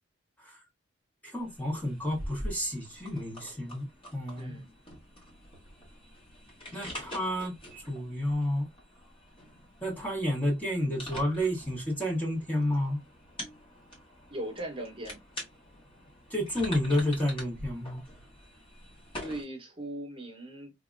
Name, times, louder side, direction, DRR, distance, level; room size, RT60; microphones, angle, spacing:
voice 1, 1.2-3.9 4.1-4.5 6.7-8.7 9.8-13.0 16.3-18.0, left 1 dB, 10° left, 1.1 m, -30 dB
sound 1, 1.3-19.4, equal, 25° left, 1.3 m, -45 dB
voice 2, 4.4-4.7 14.3-15.2 19.1-20.7, right 1 dB, 25° right, 1.0 m, -39 dB
3.6 x 2.7 x 2.5 m
head